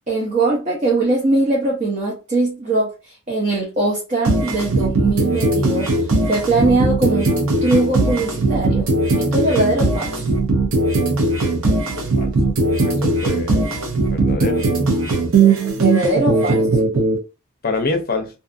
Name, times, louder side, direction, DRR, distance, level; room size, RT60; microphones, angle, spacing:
voice 1, 0.1-5.9 6.3-7.3 7.6-8.9 9.2-10.3 15.8-16.7, right 2 dB, 35° right, -3 dB, 0.6 m, -21 dB
sound 1, 4.2-17.2, right 3 dB, 70° right, 0.7 m, -18 dB
voice 2, 12.8-13.7 14.1-14.8 17.6-18.3, left 3 dB, 45° left, 5 dB, 0.6 m, -25 dB
2.7 x 2.4 x 2.5 m, 0.30 s
head